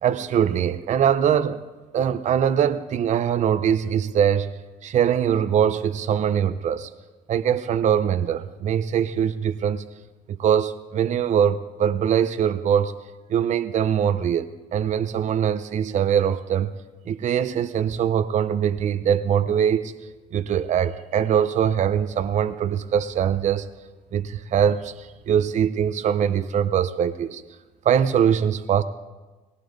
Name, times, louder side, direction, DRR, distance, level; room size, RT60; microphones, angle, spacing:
voice 1, 0.0-1.6 1.9-4.5 4.8-6.9 7.3-9.8 10.3-12.9 13.3-16.7 17.1-19.9 20.3-23.7 24.1-27.4 27.8-28.8, right 8 dB, 45° right, 12 dB, 0.6 m, -22 dB
18.0 x 17.0 x 4.0 m, 1.2 s
cardioid pair, 110°, 17 cm